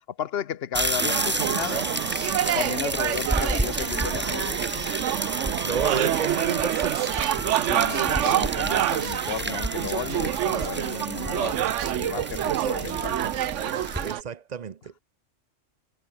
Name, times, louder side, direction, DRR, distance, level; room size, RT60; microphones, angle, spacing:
voice 1, 0.2-1.9 2.5-4.6 7.7-11.6 11.9-13.3, left 9 dB, 55° left, 1.0 m, -33 dB
sound 1, 0.7-14.1, right 1 dB, 10° right, 1.6 m, -31 dB
sound 2, 1.0-14.2, right 12 dB, 70° right, 1.0 m, -27 dB
voice 2, 5.4-7.0 14.0-15.0, right 7 dB, 40° right, 0.7 m, -30 dB
omnidirectional pair, 1.3 m